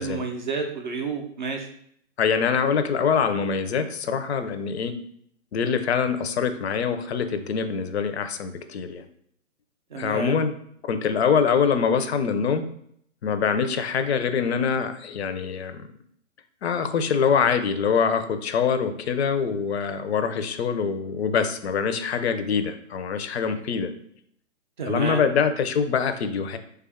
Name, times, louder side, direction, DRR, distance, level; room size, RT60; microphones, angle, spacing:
voice 1, 0.0-1.7 9.9-10.4 24.8-25.2, right 3 dB, 40° right, 3 dB, 0.4 m, -30 dB
voice 2, 2.2-5.0 5.5-9.0 10.0-10.5 10.9-12.7 13.2-15.9 16.6-23.9 24.9-26.6, left 6 dB, 55° left, 9 dB, 0.4 m, -24 dB
3.3 x 2.3 x 3.5 m, 0.67 s
hypercardioid pair, 150°, 39 cm